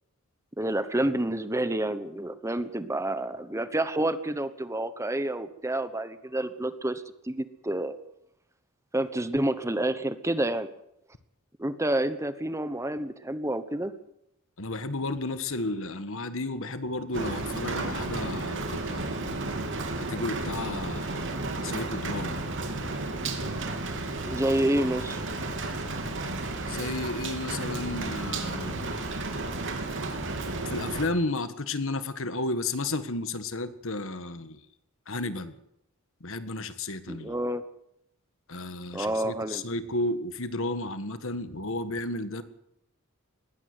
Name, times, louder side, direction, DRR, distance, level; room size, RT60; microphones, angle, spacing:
voice 1, 0.6-8.0 8.9-10.7 11.6-13.9 24.3-25.2 37.1-37.6 38.9-39.6, right 1 dB, 15° right, 12 dB, 1.0 m, -29 dB
voice 2, 14.6-19.1 20.0-21.2 21.6-22.4 26.7-28.9 30.6-34.6 35.1-35.6 36.2-37.3 38.5-42.4, left 2 dB, 60° left, 11 dB, 1.6 m, -33 dB
Rain, 17.1-31.1, right 2 dB, 60° right, 3.4 m, -33 dB
20.5 x 17.0 x 8.0 m, 0.79 s
head